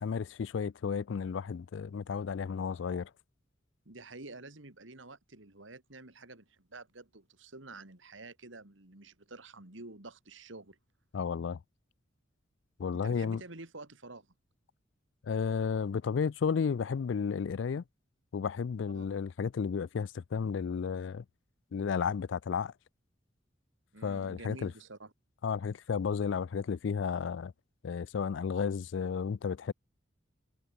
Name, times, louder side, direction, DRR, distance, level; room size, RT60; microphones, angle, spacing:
voice 1, 0.0-3.1 11.1-11.6 12.8-13.4 15.2-17.8 18.3-21.2 21.7-22.7 24.0-24.7 25.4-27.5 27.8-29.7, left 6 dB, 70° left, 0.4 m, -33 dB
voice 2, 3.8-10.8 12.9-14.3 18.9-19.1 23.9-25.1, right 2 dB, 75° right, 2.9 m, -49 dB
head